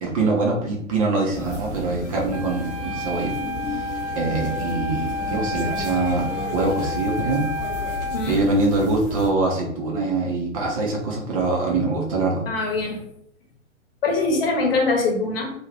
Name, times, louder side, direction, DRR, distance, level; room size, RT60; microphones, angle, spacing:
voice 1, 0.0-3.3 3.7-3.8 4.2-6.3 6.5-7.5 8.3-12.4, right 3 dB, 30° right, -2 dB, 0.5 m, -23 dB
sound 1, 1.3-9.3, left 1 dB, 10° left, 1.1 m, -33 dB
Wind instrument woodwind instrument, 2.3-8.3, left 2 dB, 80° right, 0.9 m, -30 dB
voice 2, 8.0-8.4 12.5-13.1 14.0-15.5, left 3 dB, 50° left, 2 dB, 0.9 m, -23 dB
2.5 x 2.2 x 3.3 m, 0.71 s
figure-of-eight pair, 115°, 37 cm